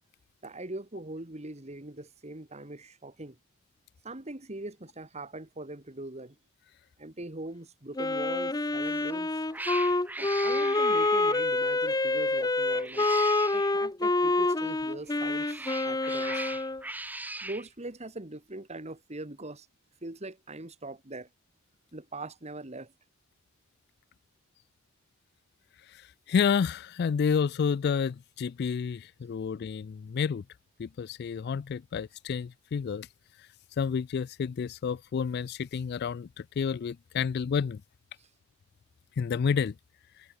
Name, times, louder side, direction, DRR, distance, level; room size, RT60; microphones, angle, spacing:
voice 1, 0.4-3.4 4.0-6.4 7.0-9.4 10.2-13.1 13.5-16.4 17.4-19.7 20.0-21.3 21.9-22.9 38.2-38.3, right 2 dB, 30° right, 2.0 m, -41 dB
Wind instrument woodwind instrument, 8.0-16.8, left 2 dB, 20° left, 0.8 m, -27 dB
Cat, 8.8-9.1 9.5-11.5 12.7-13.7 15.1-17.7, right 2 dB, 10° right, 1.6 m, -39 dB
voice 2, 26.3-30.4 30.8-33.1 33.8-36.3 36.6-37.8 39.2-39.7, left 6 dB, 50° left, 0.3 m, -29 dB
head